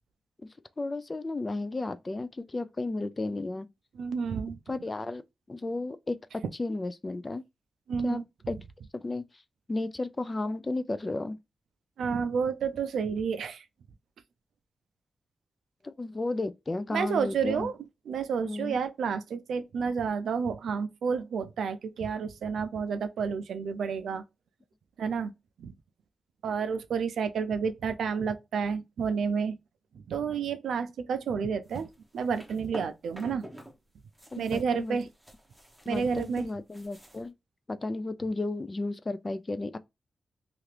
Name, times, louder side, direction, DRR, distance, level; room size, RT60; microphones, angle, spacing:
voice 1, 0.8-3.7 4.7-5.2 5.5-6.2 6.6-7.4 8.0-8.2 8.5-8.6 8.9-9.3 9.7-11.4 15.8-17.7 18.4-18.8 34.3-35.0 35.9-37.3 37.7-39.8, left 2 dB, 30° left, 0.3 m, -33 dB
voice 2, 4.0-4.6 7.9-8.2 12.0-13.6 16.9-17.7 18.1-24.2 25.0-25.3 25.6-25.7 26.4-29.6 29.9-33.4 34.4-35.1 35.9-36.5, right 6 dB, 85° right, 0.4 m, -30 dB
sound 1, 31.6-33.7 34.0-37.3, equal, 10° right, 0.9 m, -49 dB
2.8 x 2.5 x 3.2 m
cardioid pair, 65°, 0 cm